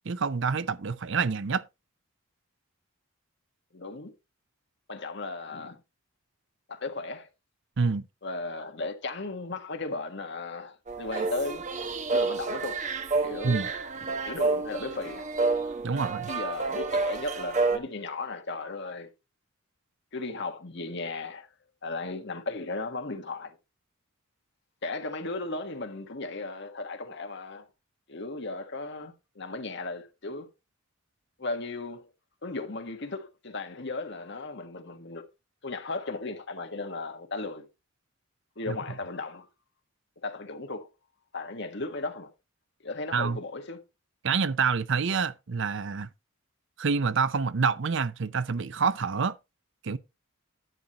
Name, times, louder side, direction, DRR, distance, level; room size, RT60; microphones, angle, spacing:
voice 1, 0.1-1.6 7.8-8.0 13.4-13.7 15.8-16.3 38.7-38.8 43.1-43.4 44.2-46.1 46.8-49.3 49.8-50.0, right 5 dB, 60° right, 0.6 m, -27 dB
voice 2, 3.7-4.1 4.9-5.8 6.7-7.3 8.2-11.6 12.1-12.9 13.2-13.7 14.2-15.3 16.3-19.1 20.1-21.5 21.8-23.6 24.8-27.7 28.1-30.5 31.4-32.1 32.4-35.3 35.6-37.7 38.6-39.5 40.2-40.9 41.3-42.3 42.8-43.8, left 3 dB, 55° left, 1.5 m, -36 dB
sound 1, 10.9-17.8, right 3 dB, 35° right, 1.0 m, -29 dB
11.0 x 9.3 x 3.0 m
head